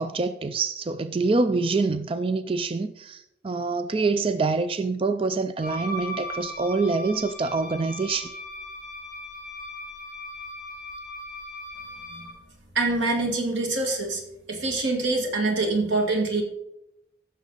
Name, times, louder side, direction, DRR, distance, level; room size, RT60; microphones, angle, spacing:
voice 1, 0.0-8.3, right 3 dB, 30° right, 0.4 m, -26 dB
Wind instrument woodwind instrument, 5.6-12.4, left 1 dB, 50° right, 3.6 m, -38 dB
voice 2, 12.8-14.2 14.5-16.4, right 3 dB, 90° right, 2.1 m, -25 dB
15.0 x 6.6 x 4.0 m
head